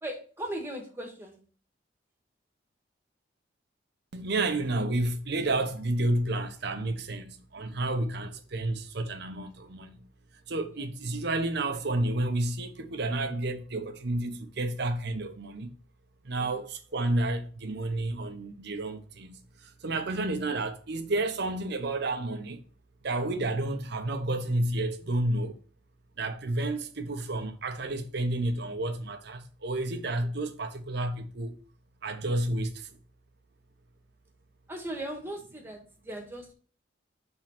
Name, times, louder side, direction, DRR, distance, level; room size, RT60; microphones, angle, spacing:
voice 1, 0.0-1.4 10.7-10.9 16.3-16.6 16.9-17.0 34.7-36.5, right 1 dB, 15° right, 1.5 m, -38 dB
voice 2, 4.1-10.0 10.5-15.7 16.2-22.6 23.0-25.6 26.2-31.6 32.0-32.9, right 2 dB, 60° right, 0.9 m, -30 dB
6.0 x 3.8 x 5.8 m
head